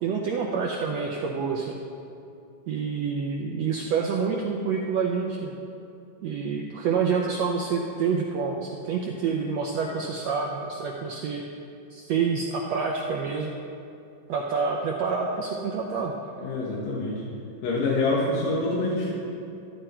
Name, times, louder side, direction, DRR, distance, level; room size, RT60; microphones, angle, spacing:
voice 1, 0.0-1.8 2.7-5.5 6.2-11.4 11.9-13.5 14.3-16.1, right 5 dB, 75° right, 0 dB, 1.5 m, -27 dB
voice 2, 16.4-17.2 17.6-19.1, left 2 dB, 85° left, -5 dB, 3.3 m, -26 dB
13.0 x 12.5 x 4.4 m, 2.6 s
omnidirectional pair, 3.9 m